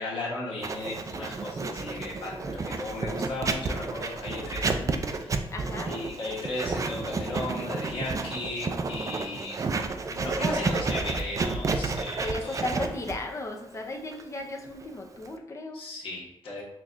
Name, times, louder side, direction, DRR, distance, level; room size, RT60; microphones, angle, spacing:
voice 1, 0.0-5.3 5.8-9.6 10.1-12.6 15.7-16.6, left 2 dB, 65° left, -5 dB, 1.1 m, -36 dB
Writing, 0.6-15.4, right 3 dB, 35° right, 0.4 m, -31 dB
voice 2, 5.5-5.9 12.2-15.8, left 2 dB, 30° left, 2 dB, 0.6 m, -35 dB
5.8 x 2.3 x 2.5 m, 0.81 s
cardioid pair, 100°, 10 cm